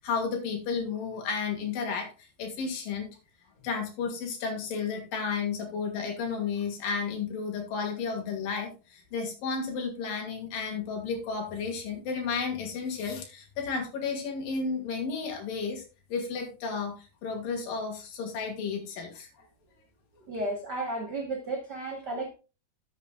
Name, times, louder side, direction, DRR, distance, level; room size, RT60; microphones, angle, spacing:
voice 1, 0.0-3.1 3.6-15.8 16.1-17.0 17.2-19.5, left 5 dB, 85° left, 2 dB, 3.5 m, -32 dB
voice 2, 20.3-22.3, right 2 dB, 80° right, 1 dB, 0.9 m, -33 dB
13.0 x 7.3 x 2.3 m, 0.31 s
omnidirectional pair, 3.8 m